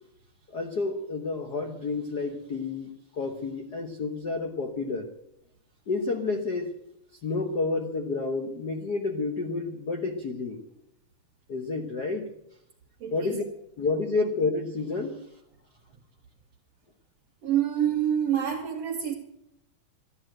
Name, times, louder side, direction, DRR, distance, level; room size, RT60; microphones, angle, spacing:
voice 1, 0.5-5.1 5.9-6.7 7.2-10.6 11.5-12.3 13.1-13.4 13.8-15.2, left 3 dB, 55° left, 3 dB, 1.1 m, -30 dB
voice 2, 13.0-13.4 17.4-19.1, right 9 dB, 60° right, -2 dB, 2.4 m, -27 dB
14.5 x 10.5 x 7.6 m, 0.80 s
omnidirectional pair, 3.4 m